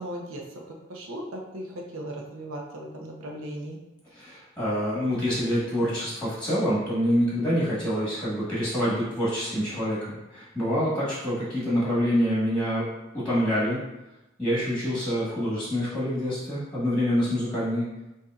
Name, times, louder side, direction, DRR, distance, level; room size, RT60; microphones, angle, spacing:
voice 1, 0.0-3.8, right 1 dB, 90° right, 0 dB, 0.8 m, -37 dB
voice 2, 4.1-12.8 13.1-13.8 14.4-17.8, equal, 5° left, -8 dB, 1.3 m, -26 dB
6.5 x 2.7 x 2.4 m, 0.98 s
head